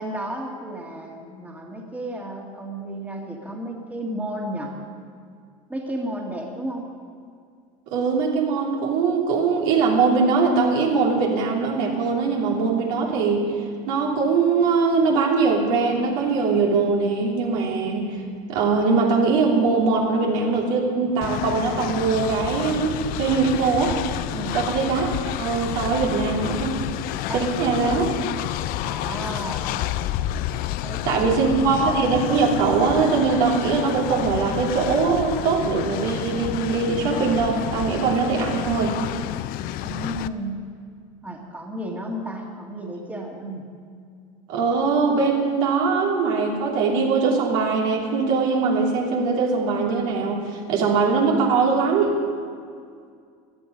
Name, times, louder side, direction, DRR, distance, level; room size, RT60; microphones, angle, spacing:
voice 1, 0.0-4.8 5.7-7.0 24.3-24.6 27.3-28.0 28.8-29.7 30.8-31.9 39.8-40.7 41.2-43.7, right 1 dB, 10° right, 0 dB, 2.2 m, -33 dB
voice 2, 7.9-13.4 13.9-18.1 18.5-24.0 24.5-25.1 25.4-26.8 27.3-28.1 31.0-38.9 44.5-52.1, right 4 dB, 70° right, -2 dB, 3.0 m, -21 dB
Train, 21.2-40.3, left 13 dB, 55° left, 0.5 m, -30 dB
16.5 x 11.5 x 5.4 m, 2.2 s
supercardioid pair, 100°, 18 cm